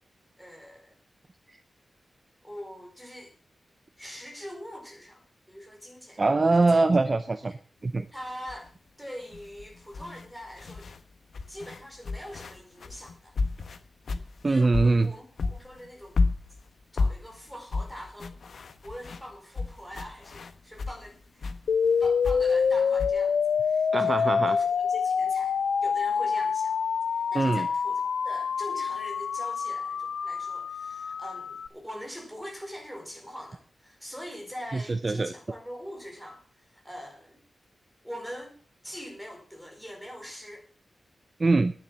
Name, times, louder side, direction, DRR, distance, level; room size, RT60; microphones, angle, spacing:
voice 1, 0.4-1.0 2.4-3.3 4.0-6.8 8.1-8.7 9.0-10.9 11.5-13.4 14.4-16.2 16.9-18.4 18.8-21.5 22.0-26.7 27.1-37.4 38.0-38.6 38.8-40.7, equal, ahead, 1 dB, 4.5 m, -43 dB
voice 2, 6.2-7.5 7.8-8.0 14.4-15.1 23.9-24.6 27.3-27.7 34.7-35.3 41.4-41.7, right 3 dB, 30° right, 11 dB, 0.6 m, -23 dB
sound 1, 8.5-8.7 9.3-11.0 11.3-15.1 15.4-21.0 21.4-23.1, left 3 dB, 65° left, 1.2 m, -32 dB
sound 2, 21.7-31.7, left 6 dB, 80° left, 0.5 m, -26 dB
10.0 x 9.7 x 7.4 m, 0.42 s
wide cardioid pair, 165°, 0 cm